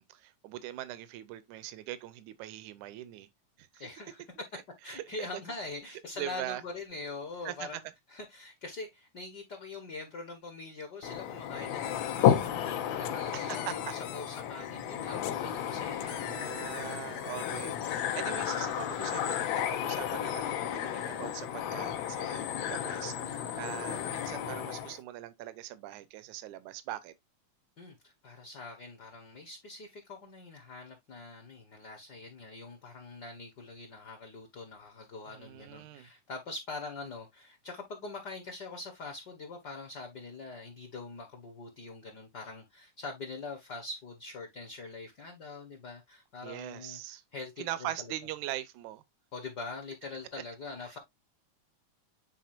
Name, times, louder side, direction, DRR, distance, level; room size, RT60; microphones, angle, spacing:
voice 1, 0.0-3.3 3.6-3.7 4.9-5.3 6.2-6.6 7.5-7.7 13.3-13.9 16.0-27.1 35.3-36.1 46.4-47.2 47.6-49.0 50.9-51.0, right 14 dB, 85° right, 2.1 m, -41 dB
voice 2, 3.8-4.2 4.8-7.8 8.1-17.2 27.8-47.9 49.3-51.0, left 3 dB, 50° left, 1.3 m, -44 dB
sound 1, 11.0-25.0, left 10 dB, 70° left, 1.9 m, -32 dB
sound 2, 11.8-12.5 13.0-14.4 15.2-17.8, left 12 dB, 85° left, 2.2 m, -47 dB
9.3 x 4.1 x 2.6 m
omnidirectional pair, 3.5 m